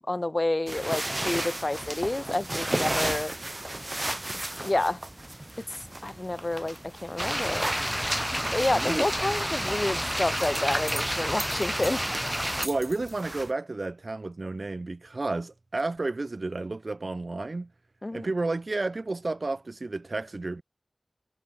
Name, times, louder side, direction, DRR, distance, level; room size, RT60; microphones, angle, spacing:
voice 1, 0.1-3.3 4.6-5.0 5.7-6.8 7.0-7.7 8.5-12.0 18.0-18.3, left 2 dB, 50° left, 0.7 m, -29 dB
sound 1, 0.7-13.5, right 1 dB, 35° right, 1.3 m, -35 dB
sound 2, 7.2-12.7, equal, 5° right, 0.6 m, -29 dB
voice 2, 8.7-9.1 12.6-17.7 18.1-20.6, right 2 dB, 75° right, 0.3 m, -31 dB
wide cardioid pair, 40°, 0 cm